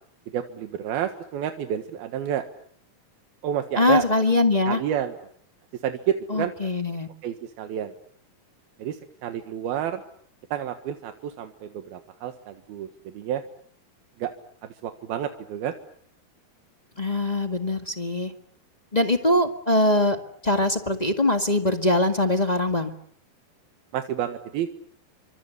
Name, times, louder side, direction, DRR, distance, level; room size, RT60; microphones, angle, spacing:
voice 1, 0.3-2.4 3.4-4.0 4.7-5.3 5.8-6.5 7.2-7.9 8.8-10.0 10.5-13.4 14.2-14.3 14.8-15.7 23.9-24.7, right 10 dB, 85° right, 7 dB, 3.4 m, -29 dB
voice 2, 3.8-4.8 6.3-7.1 17.0-18.3 18.9-20.2 20.4-22.9, left 2 dB, 30° left, 7 dB, 0.7 m, -22 dB
28.5 x 25.0 x 8.1 m, 0.63 s
omnidirectional pair, 4.2 m